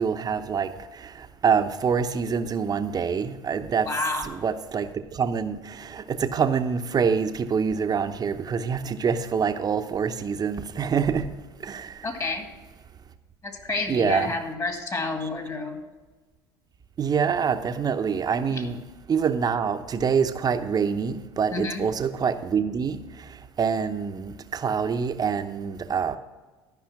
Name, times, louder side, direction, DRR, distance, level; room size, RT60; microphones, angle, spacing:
voice 1, 0.0-3.9 4.2-11.3 11.6-12.1 13.9-14.3 15.2-15.3 17.0-18.8 19.1-23.3 23.6-26.2, right 6 dB, 35° right, 0.8 m, -26 dB
voice 2, 3.8-4.3 12.0-12.5 13.4-15.8 18.5-18.7 21.5-21.8, left 3 dB, 30° left, 2.1 m, -29 dB
13.0 x 5.4 x 5.9 m
hypercardioid pair, 80°, 12 cm